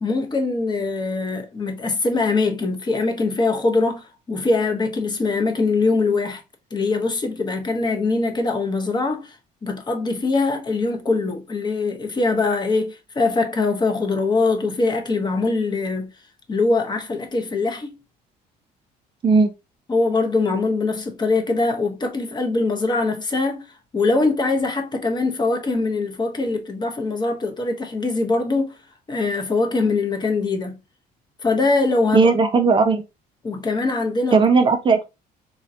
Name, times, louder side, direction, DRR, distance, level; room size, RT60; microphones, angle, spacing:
voice 1, 0.0-6.4 6.7-9.4 9.6-16.1 16.5-18.0 19.9-23.6 23.9-28.7 29.1-30.8 31.4-32.3 33.4-34.4, left 3 dB, 25° left, 0.7 m, -22 dB
voice 2, 32.1-33.0 34.3-35.0, right 4 dB, 30° right, 0.4 m, -16 dB
3.7 x 2.1 x 2.5 m
cardioid pair, 110°, 17 cm